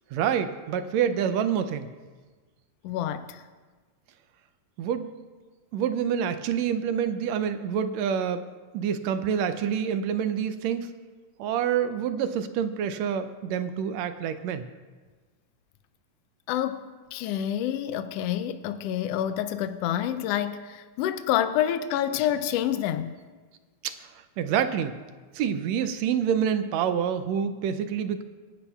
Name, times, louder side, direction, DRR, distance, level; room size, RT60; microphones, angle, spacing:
voice 1, 0.1-1.9 4.8-5.2 5.7-8.4 8.7-10.9 11.4-14.6 23.8-24.1 24.4-25.0 25.4-28.2, right 8 dB, 75° right, 1.7 m, -27 dB
voice 2, 2.8-3.4 16.5-23.1, left 11 dB, 85° left, 1.4 m, -28 dB
26.5 x 11.0 x 2.3 m
omnidirectional pair, 3.3 m